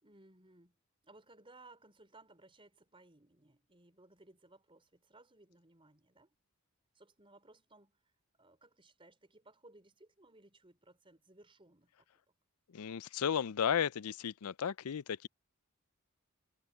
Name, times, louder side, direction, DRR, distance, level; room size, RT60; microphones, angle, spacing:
voice 1, 0.0-0.8 1.0-6.3 6.9-8.0 8.4-12.1, right 2 dB, 25° right, 4.4 m, -61 dB
voice 2, 12.7-15.3, left 8 dB, 85° left, 0.5 m, -34 dB
head